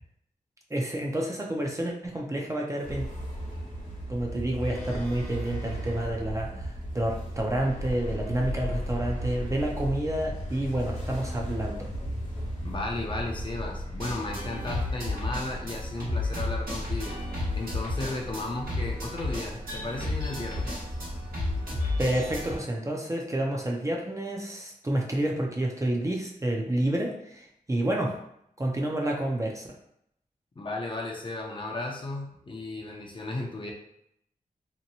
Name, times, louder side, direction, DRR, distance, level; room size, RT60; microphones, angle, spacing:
voice 1, 0.7-3.1 4.1-11.9 22.0-28.2 28.6-29.7, right 1 dB, 20° right, -1 dB, 0.5 m, -29 dB
sound 1, 2.8-22.6, equal, 55° left, 1.2 m, -36 dB
voice 2, 12.6-17.2 17.5-20.8 30.6-33.7, left 2 dB, 35° left, -1 dB, 0.6 m, -35 dB
sound 2, 14.0-22.6, left 2 dB, 85° right, 1.0 m, -33 dB
2.8 x 2.2 x 2.7 m, 0.74 s
cardioid pair, 60°, 15 cm